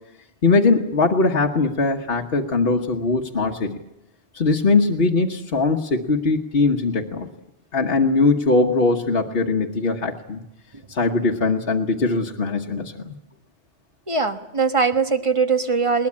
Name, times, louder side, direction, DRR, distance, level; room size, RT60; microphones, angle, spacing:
voice 1, 0.4-3.7 4.3-7.3 7.7-10.4 10.9-13.1, left 3 dB, 55° left, 0 dB, 1.4 m, -20 dB
voice 2, 14.1-16.1, right 5 dB, 25° right, 8 dB, 1.4 m, -21 dB
21.5 x 19.5 x 8.7 m, 0.86 s
omnidirectional pair, 1.2 m